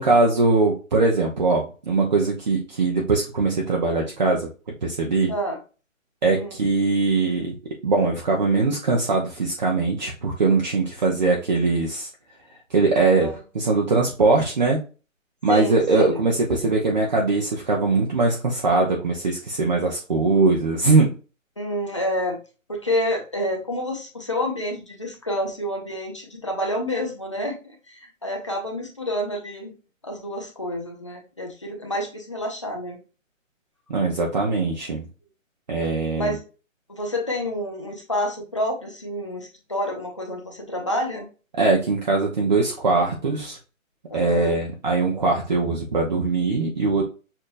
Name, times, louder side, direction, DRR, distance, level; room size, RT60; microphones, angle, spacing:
voice 1, 0.0-4.5 4.8-5.3 6.2-7.6 7.8-12.1 12.7-14.8 15.4-21.1 33.9-35.1 35.7-36.4 41.6-43.6 44.1-47.0, right 3 dB, 35° right, -1 dB, 0.7 m, -21 dB
voice 2, 5.3-5.6 6.4-6.6 13.2-13.4 15.5-16.2 21.6-22.4 22.7-29.7 30.0-33.0 36.1-36.4 36.9-41.3 44.1-44.6, equal, 25° left, 2 dB, 0.5 m, -28 dB
6.6 x 2.8 x 2.5 m, 0.33 s
hypercardioid pair, 165°, 40 cm